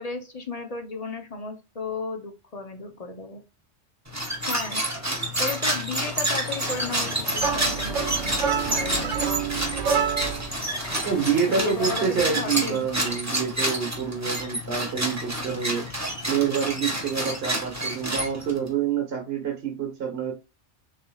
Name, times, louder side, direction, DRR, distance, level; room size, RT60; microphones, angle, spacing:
voice 1, 0.0-3.4 4.4-8.4 8.7-9.2 11.5-12.8, left 3 dB, 40° left, 5 dB, 0.7 m, -34 dB
sound 1, 4.1-18.7, right 1 dB, 15° right, 1.2 m, -29 dB
sound 2, 5.8-12.5, left 2 dB, 65° left, 1.6 m, -42 dB
sound 3, 7.4-10.5, right 7 dB, 90° right, 1.0 m, -27 dB
voice 2, 11.0-15.8 16.3-20.3, right 7 dB, 55° right, 1 dB, 1.4 m, -27 dB
6.6 x 3.4 x 2.3 m, 0.28 s
omnidirectional pair, 1.3 m